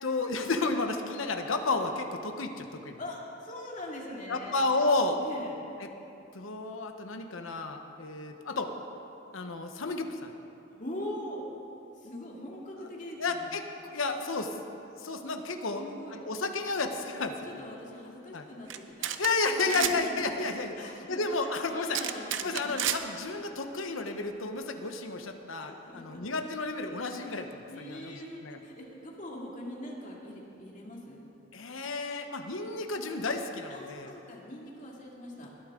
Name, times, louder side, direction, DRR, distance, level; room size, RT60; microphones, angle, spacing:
voice 1, 0.0-3.0 4.3-5.2 5.8-5.9 6.3-8.7 9.3-10.3 12.8-12.9 13.2-14.6 14.9-15.8 16.2-17.5 18.3-18.5 19.2-22.0 22.4-28.6 31.5-34.1, left 3 dB, 85° left, 6 dB, 1.0 m, -32 dB
voice 2, 3.0-4.6 5.2-5.5 10.8-11.4 12.0-13.5 15.7-16.2 17.4-19.1 19.5-20.3 20.8-21.2 21.6-22.9 25.6-26.2 27.7-31.5 33.7-35.5, left 1 dB, 40° left, -2 dB, 2.2 m, -42 dB
sound 1, 18.7-18.8 19.0-19.3 19.6-19.9 21.9-23.0, right 11 dB, 65° right, 0.6 m, -30 dB
20.5 x 12.5 x 3.8 m, 2.8 s
head